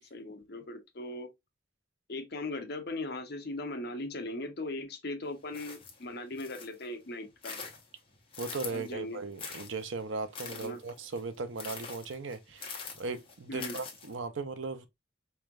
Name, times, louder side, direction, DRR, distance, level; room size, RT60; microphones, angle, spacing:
voice 1, 0.1-1.3 2.1-7.6 8.7-9.2 10.5-10.8 13.5-13.8, left 2 dB, 55° left, 0.8 m, -39 dB
sound 1, 5.5-6.9 7.3-8.9 9.4-14.2, left 5 dB, 30° left, 0.9 m, -44 dB
voice 2, 8.4-14.9, right 4 dB, 75° right, 0.6 m, -37 dB
4.5 x 3.2 x 2.3 m
head